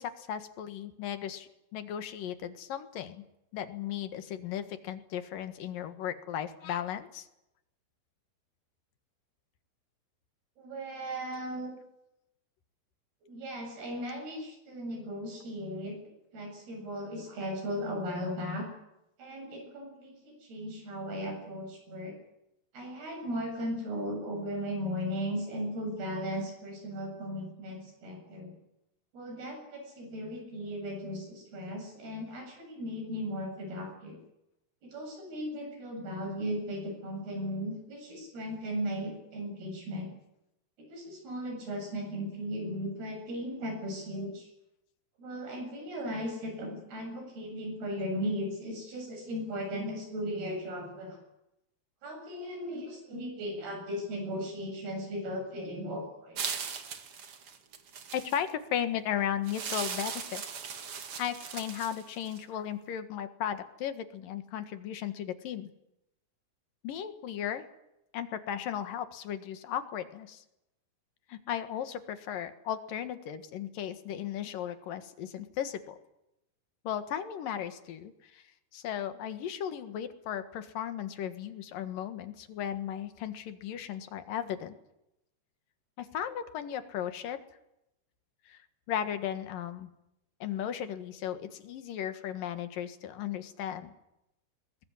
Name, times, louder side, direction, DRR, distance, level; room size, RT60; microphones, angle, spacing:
voice 1, 0.0-3.2 3.5-7.3 58.1-60.4 61.2-65.7 66.8-67.6 68.1-70.4 71.3-76.0 76.8-78.4 78.7-84.7 86.0-87.4 88.5-88.6 88.9-89.9 90.4-93.9, left 9 dB, 65° left, 10 dB, 3.1 m, -36 dB
voice 2, 10.6-11.7 13.3-16.0 16.3-18.7 19.2-22.1 22.7-28.5 29.1-34.2 34.8-40.1 40.8-44.5 45.2-51.2 52.0-56.4, equal, 70° right, 3 dB, 9.5 m, -37 dB
sound 1, 56.4-58.5 59.5-62.4, right 6 dB, 45° right, 2.2 m, -38 dB
21.5 x 21.0 x 9.9 m, 0.86 s
omnidirectional pair, 4.7 m